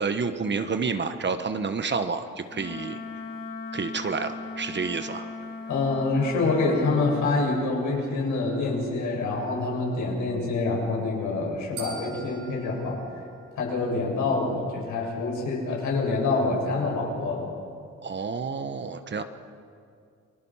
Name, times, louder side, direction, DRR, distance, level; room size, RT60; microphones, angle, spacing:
voice 1, 0.0-3.0 3.7-5.2 18.0-19.2, right 5 dB, 35° right, 9 dB, 1.3 m, -29 dB
Wind instrument woodwind instrument, 2.5-7.3, left 4 dB, 35° left, 4.9 m, -38 dB
voice 2, 5.7-13.0 13.5-17.5, left 3 dB, 75° left, -2 dB, 7.5 m, -26 dB
sound 1, 11.8-14.0, right 5 dB, 80° right, 6.9 m, -43 dB
30.0 x 20.0 x 5.8 m, 2.3 s
cardioid pair, 90°, 30 cm